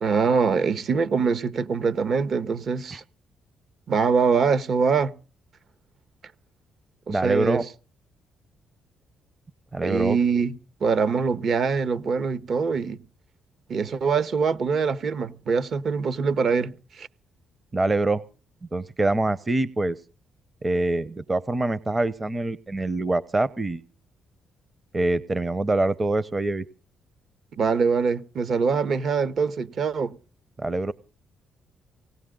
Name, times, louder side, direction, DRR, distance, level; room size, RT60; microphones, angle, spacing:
voice 1, 0.0-3.0 3.9-5.1 7.1-7.6 9.8-10.6 10.8-13.0 13.7-17.1 27.6-30.1, right 5 dB, 55° right, 1.2 m, -23 dB
voice 2, 7.1-7.6 9.7-10.2 17.7-18.2 18.7-20.0 20.6-23.8 24.9-26.6 30.6-30.9, right 2 dB, 25° right, 0.8 m, -25 dB
19.0 x 17.5 x 3.8 m
cardioid pair, 90°, 0 cm